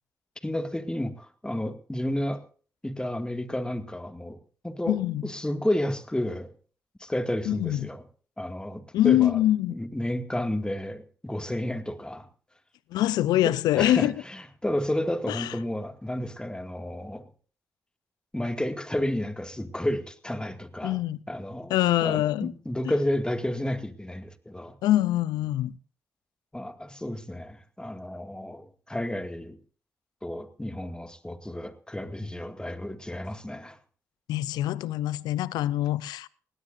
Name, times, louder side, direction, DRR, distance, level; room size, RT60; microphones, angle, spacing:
voice 1, 0.4-2.4 2.8-4.4 4.6-6.5 7.0-8.0 8.4-9.4 9.7-12.3 13.4-17.3 18.3-21.0 21.3-21.8 22.0-24.8 26.5-29.6 30.2-33.8, left 1 dB, 10° left, 2.2 m, -31 dB
voice 2, 4.9-5.3 7.5-7.9 8.9-9.7 12.9-14.1 15.3-15.5 20.8-21.2 21.7-22.5 24.8-25.8 34.3-36.3, left 13 dB, 85° left, 0.6 m, -24 dB
20.0 x 17.0 x 2.6 m
supercardioid pair, 45°, 7 cm